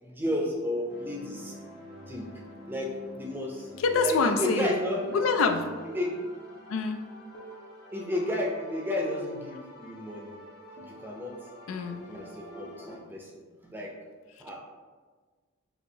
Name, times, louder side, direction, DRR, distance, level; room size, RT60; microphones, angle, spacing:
voice 1, 0.0-1.5 2.1-2.3 2.7-3.7 4.0-5.0 5.9-6.2 7.9-10.3 10.8-11.4 12.1-13.3 13.6-14.0 14.4-14.6, left 1 dB, 10° right, -1 dB, 0.5 m, -32 dB
sound 1, 0.9-13.0, equal, 50° left, 0.6 m, -46 dB
voice 2, 3.7-4.8 5.1-5.7 6.7-7.0 11.7-12.0, left 4 dB, 85° left, 6 dB, 0.4 m, -26 dB
4.2 x 2.8 x 2.7 m, 1.4 s
head